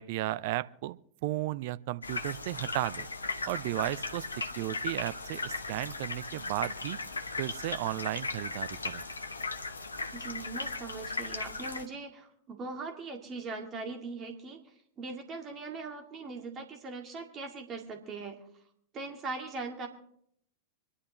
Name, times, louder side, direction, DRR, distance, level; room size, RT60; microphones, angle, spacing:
voice 1, 0.0-3.1 3.5-4.3 4.6-7.0 7.4-9.0, right 16 dB, 50° right, 16 dB, 0.5 m, -34 dB
sound 1, 2.0-11.8, left 3 dB, 75° left, 0.9 m, -37 dB
voice 2, 10.1-18.4 18.9-19.9, right 3 dB, 30° right, 3 dB, 2.1 m, -40 dB
25.5 x 11.0 x 3.0 m, 0.69 s
figure-of-eight pair, 90°, 0 cm